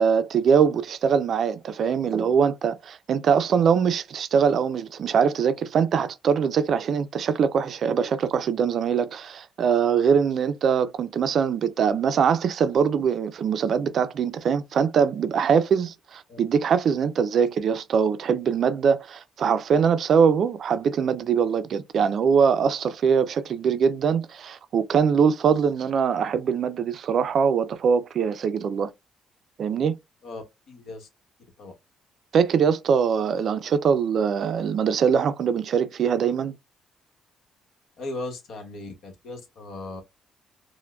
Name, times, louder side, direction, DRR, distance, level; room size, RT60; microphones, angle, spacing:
voice 1, 0.0-28.9 29.6-30.0 32.3-36.6, right 7 dB, 60° right, 0.4 m, -22 dB
voice 2, 30.2-31.1 31.6-31.7 38.0-40.0, left 2 dB, 70° left, 1.0 m, -37 dB
4.4 x 2.1 x 2.3 m
cardioid pair, 90°, 0 cm